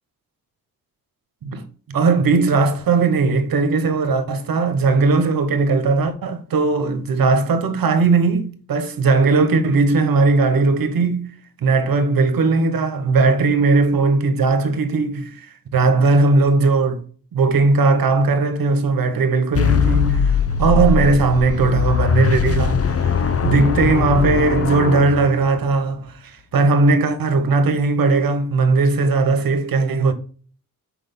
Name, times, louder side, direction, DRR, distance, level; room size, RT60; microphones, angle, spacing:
voice 1, 1.4-11.3 11.6-15.5 15.7-17.0 17.3-30.1, right 3 dB, 85° right, 1.2 m, -18 dB
sound 1, 19.5-25.7, left 6 dB, 45° left, 0.7 m, -20 dB
6.2 x 5.0 x 5.3 m
cardioid pair, 85°, 34 cm